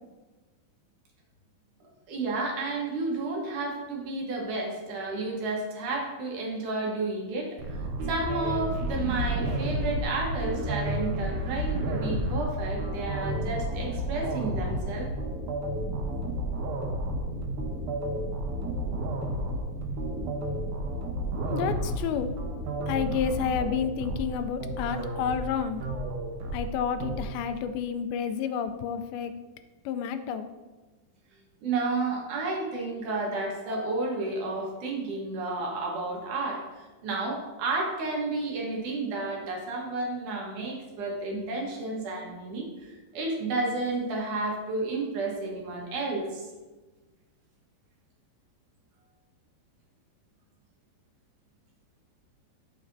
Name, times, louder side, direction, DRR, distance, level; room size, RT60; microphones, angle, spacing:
voice 1, 2.1-7.8 8.1-15.1 20.1-20.2 31.6-36.6 37.0-46.5, right 3 dB, 65° right, -2 dB, 2.3 m, -31 dB
sound 1, 7.6-27.2, right 1 dB, 80° right, 1.7 m, -31 dB
voice 2, 21.5-22.4 22.9-25.8 26.5-29.3 29.9-30.5, left 7 dB, 85° left, 8 dB, 2.1 m, -30 dB
14.5 x 4.9 x 2.6 m, 1.2 s
omnidirectional pair, 4.8 m